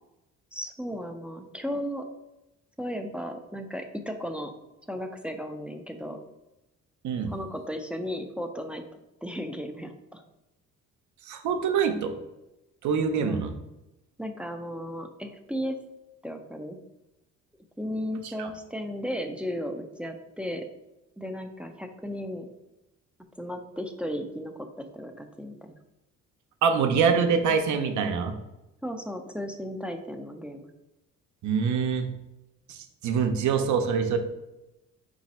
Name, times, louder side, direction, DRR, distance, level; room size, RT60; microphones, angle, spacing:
voice 1, 0.5-2.0 2.8-4.5 4.9-6.2 7.3-8.8 9.2-10.2 13.2-13.4 14.2-15.8 16.2-16.8 17.8-20.7 21.2-22.5 23.4-25.8 28.8-30.7, equal, 5° right, 5 dB, 0.4 m, -35 dB
voice 2, 11.3-12.1 12.8-13.5 18.4-18.5 26.6-28.3 31.4-32.1 32.7-34.2, right 6 dB, 75° right, 6 dB, 0.6 m, -25 dB
3.9 x 2.6 x 4.1 m, 0.93 s
cardioid pair, 90°, 30 cm